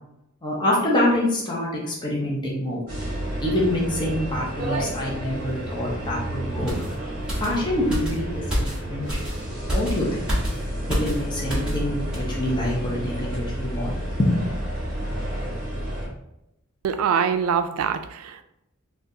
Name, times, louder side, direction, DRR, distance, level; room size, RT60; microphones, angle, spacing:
voice 1, 0.4-2.8 3.4-6.7 7.4-9.2 9.7-10.2 10.9-13.9 14.2-14.4, left 1 dB, 20° left, -5 dB, 0.6 m, -25 dB
sound 1, 2.9-16.1, right 1 dB, 45° right, 1.1 m, -31 dB
sound 2, 6.7-11.9 12.1-12.3, equal, 5° right, 1.2 m, -29 dB
voice 2, 16.8-18.4, right 7 dB, 90° right, 10 dB, 0.3 m, -24 dB
3.8 x 2.4 x 2.7 m, 0.87 s
head